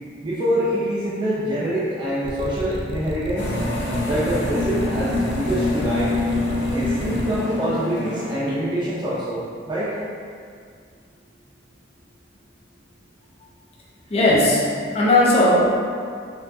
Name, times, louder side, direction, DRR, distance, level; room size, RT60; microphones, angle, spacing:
voice 1, 0.2-3.5 4.0-6.1 6.7-10.0, right 1 dB, 25° right, -11 dB, 0.5 m, -25 dB
sound 1, 2.2-7.4, right 1 dB, 80° right, 0.3 m, -31 dB
sound 2, 3.4-8.4, left 2 dB, 75° left, 0.6 m, -26 dB
voice 2, 14.1-14.7 14.9-15.7, left 1 dB, 35° left, -5 dB, 0.6 m, -16 dB
4.4 x 2.5 x 2.6 m, 2.2 s
head